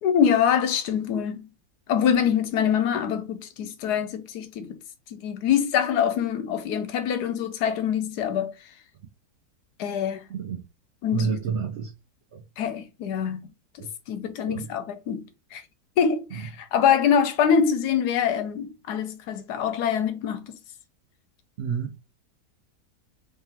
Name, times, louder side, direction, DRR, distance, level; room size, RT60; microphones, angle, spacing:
voice 1, 0.0-1.5 1.9-4.8 5.1-8.5 9.8-10.3 11.0-11.4 12.6-13.5 14.1-15.2 15.5-15.6 16.0-20.6, left 8 dB, 80° left, 1.1 m, -24 dB
voice 2, 11.1-11.9 12.3-12.4 13.8-13.9 14.4-14.7 16.3-16.5 21.6-21.9, right 6 dB, 60° right, 0.7 m, -29 dB
3.6 x 3.5 x 2.8 m
omnidirectional pair, 1.7 m